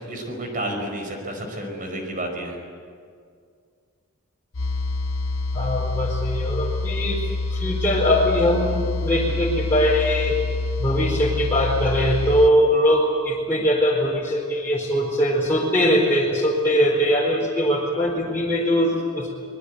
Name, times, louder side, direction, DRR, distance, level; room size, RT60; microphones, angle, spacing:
voice 1, 0.0-2.6, right 1 dB, 40° right, 3 dB, 4.9 m, -31 dB
sound 1, 4.5-12.5, left 3 dB, 70° left, 0.8 m, -26 dB
voice 2, 5.5-7.2 7.5-10.4 10.8-19.3, equal, 10° left, -6 dB, 4.3 m, -21 dB
25.0 x 22.0 x 8.3 m, 2.1 s
head